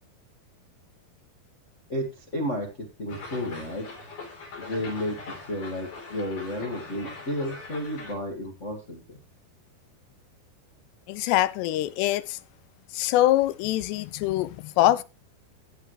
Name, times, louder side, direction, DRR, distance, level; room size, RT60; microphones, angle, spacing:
voice 1, 1.9-2.7 3.0-3.8 4.6-5.1 5.5-9.2, left 1 dB, 70° left, 0.7 m, -32 dB
sound 1, 3.1-8.2, left 3 dB, 55° left, 5.2 m, -41 dB
voice 2, 11.1-12.4 12.9-15.0, left 14 dB, 85° left, 2.8 m, -24 dB
16.0 x 8.5 x 3.2 m
omnidirectional pair, 4.8 m